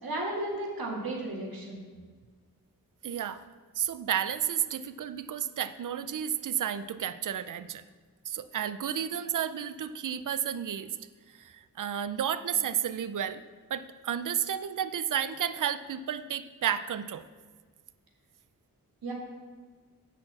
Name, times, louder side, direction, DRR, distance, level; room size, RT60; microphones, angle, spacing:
voice 1, 0.0-1.8 19.0-19.1, right 1 dB, 80° right, -2 dB, 2.2 m, -34 dB
voice 2, 3.0-3.4 3.8-7.8 8.3-11.0 11.3-13.4 13.7-17.2, right 9 dB, 60° right, 13 dB, 0.5 m, -32 dB
10.0 x 4.6 x 7.5 m, 1.5 s
wide cardioid pair, 90°, 35 cm